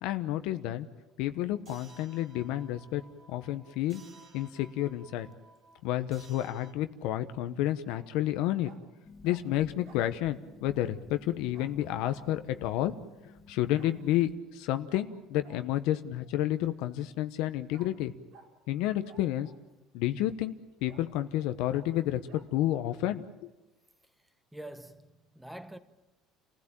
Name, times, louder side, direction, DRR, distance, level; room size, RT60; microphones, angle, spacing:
voice 1, 0.0-0.9 1.2-3.0 3.3-4.0 4.3-5.3 5.8-8.7 9.2-12.9 13.5-18.1 18.7-19.5 19.9-20.6 20.8-23.5, left 13 dB, 70° left, 1.1 m, -30 dB
sound 1, 1.7-6.7, right 3 dB, 35° right, 3.0 m, -56 dB
Bark, 6.2-6.5 7.9-8.1 8.6-8.8 9.2-9.4 9.8-10.1 11.5-11.7 12.1-12.3 13.7-13.9 14.9-15.0 15.4-15.6 17.7-17.9 18.3-18.5 19.0-19.7 20.2-20.3 20.9-21.1 21.7-21.9 22.3-22.5, right 4 dB, 65° right, 3.8 m, -55 dB
Harp, 9.0-14.3, left 3 dB, 20° left, 1.4 m, -54 dB
voice 2, 24.5-25.8, right 1 dB, 5° right, 1.2 m, -45 dB
29.5 x 16.0 x 9.0 m
cardioid pair, 150°, 0 cm